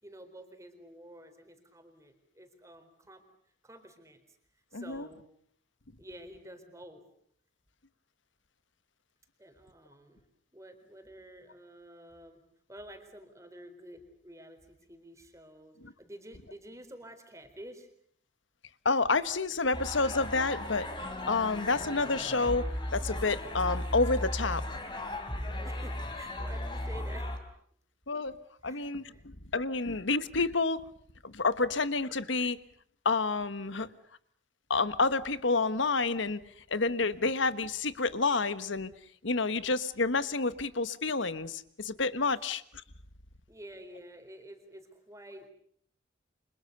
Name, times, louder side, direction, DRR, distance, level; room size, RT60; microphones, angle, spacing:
voice 1, 0.0-3.2 3.6-4.2 4.7-5.3 6.0-7.1 9.4-10.3 10.5-12.4 12.7-17.9 25.6-27.3 28.6-29.2 43.5-45.5, right 1 dB, 15° right, 4.1 m, -50 dB
voice 2, 4.7-5.1 15.8-15.9 18.8-20.9 21.3-24.6 28.1-28.4 28.6-30.8 31.2-32.6 33.0-33.9 34.7-36.4 36.7-38.9 39.2-42.6, left 3 dB, 75° left, 1.4 m, -29 dB
sound 1, 19.7-27.4, left 1 dB, 25° left, 3.9 m, -36 dB
30.0 x 26.5 x 6.8 m
head